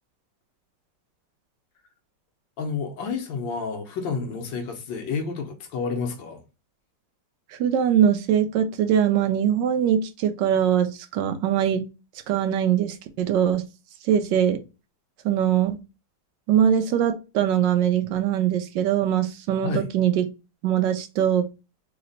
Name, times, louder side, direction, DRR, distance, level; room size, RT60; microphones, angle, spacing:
voice 1, 2.6-6.4 19.6-19.9, left 5 dB, 80° left, 1.5 m, -30 dB
voice 2, 7.5-11.8 12.3-13.6 14.0-14.6 15.2-15.8 16.5-20.2 20.6-21.4, right 9 dB, 80° right, 1.3 m, -22 dB
3.8 x 2.1 x 3.8 m
omnidirectional pair, 1.9 m